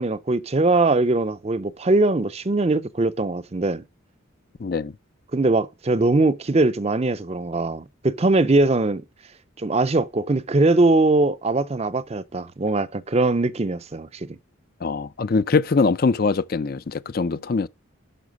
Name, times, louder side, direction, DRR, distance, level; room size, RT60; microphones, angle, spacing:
voice 1, 0.0-3.8 5.3-9.0 9.6-14.3, right 2 dB, 30° right, 0.5 m, -21 dB
voice 2, 4.6-4.9 14.8-17.7, left 4 dB, 45° left, 0.4 m, -22 dB
11.0 x 6.0 x 5.2 m
head